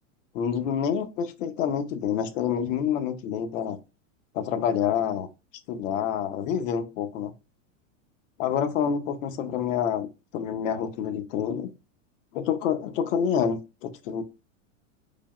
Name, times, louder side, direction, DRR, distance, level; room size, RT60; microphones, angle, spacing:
voice 1, 0.3-3.8 4.3-5.3 5.7-7.3 8.4-10.1 10.3-11.7 12.3-14.2, left 8 dB, 75° left, 0.7 m, -27 dB
3.3 x 2.0 x 2.3 m
supercardioid pair, 125°, 39 cm